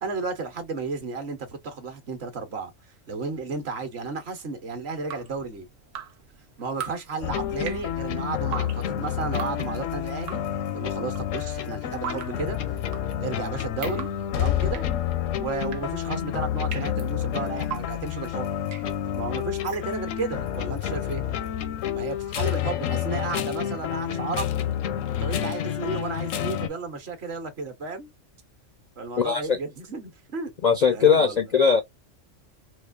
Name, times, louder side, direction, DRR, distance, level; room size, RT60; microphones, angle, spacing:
voice 1, 0.0-2.7 3.1-5.7 6.6-10.4 10.7-12.8 13.2-14.1 14.4-14.8 15.4-18.5 19.1-21.2 21.9-24.5 25.2-28.1 29.0-30.5 30.9-31.5, right 4 dB, 60° right, 1.1 m, -33 dB
Drip, 4.9-20.3, right 8 dB, 90° right, 1.1 m, -42 dB
sound 1, 7.2-26.7, left 10 dB, 90° left, 1.0 m, -29 dB
voice 2, 29.2-29.6 30.6-31.8, left 6 dB, 70° left, 0.4 m, -20 dB
4.2 x 2.4 x 2.3 m
omnidirectional pair, 1.3 m